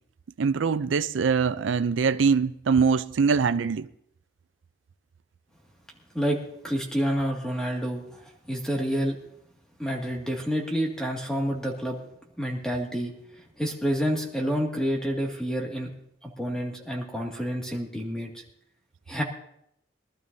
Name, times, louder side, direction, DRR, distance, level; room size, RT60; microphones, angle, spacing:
voice 1, 0.4-3.9, right 5 dB, 85° right, 0.5 m, -23 dB
voice 2, 6.1-9.2 9.8-12.0 12.4-15.9 16.2-18.4 19.1-19.2, equal, 5° left, 2.0 m, -29 dB
23.0 x 12.5 x 2.7 m
head